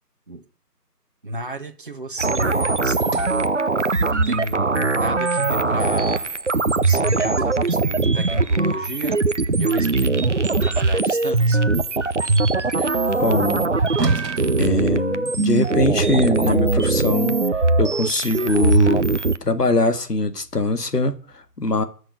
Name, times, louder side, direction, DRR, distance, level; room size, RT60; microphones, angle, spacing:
voice 1, 1.2-3.5 4.1-6.3 6.7-9.2 9.6-10.2 10.6-11.6, right 1 dB, 35° right, 1.4 m, -32 dB
sound 1, 2.2-19.4, right 3 dB, 50° right, 0.6 m, -21 dB
Sliding door, 3.0-7.2 10.7-15.7, right 4 dB, 75° right, 1.4 m, -38 dB
voice 2, 13.2-13.7 14.6-17.4 17.8-21.8, left 2 dB, 75° left, 2.0 m, -22 dB
12.0 x 6.3 x 8.9 m
figure-of-eight pair, 170°, 48 cm